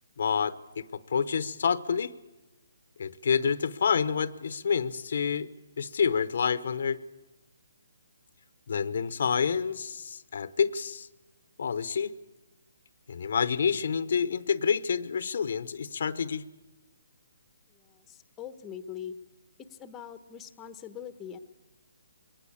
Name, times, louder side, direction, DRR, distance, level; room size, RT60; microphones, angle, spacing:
voice 1, 0.2-2.1 3.0-5.5 5.8-7.0 8.7-11.1 11.6-12.1 13.1-16.4, left 6 dB, 60° left, 15 dB, 0.9 m, -28 dB
voice 2, 17.7-19.2 19.6-21.4, left 9 dB, 15° left, 11 dB, 1.1 m, -42 dB
22.5 x 18.0 x 8.6 m, 1.1 s
hypercardioid pair, 155°, 0 cm